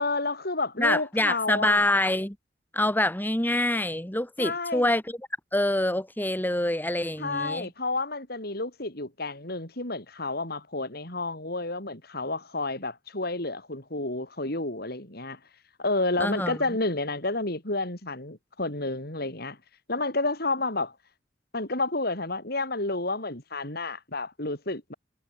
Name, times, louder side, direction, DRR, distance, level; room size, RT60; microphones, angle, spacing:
voice 1, 0.0-1.9 4.4-4.9 7.2-15.4 15.8-19.6 19.9-20.9 21.5-24.9, left 2 dB, 60° left, 6.7 m, -30 dB
voice 2, 0.8-2.3 2.7-5.2 5.5-7.7 16.2-16.6, left 1 dB, 10° left, 2.9 m, -26 dB
head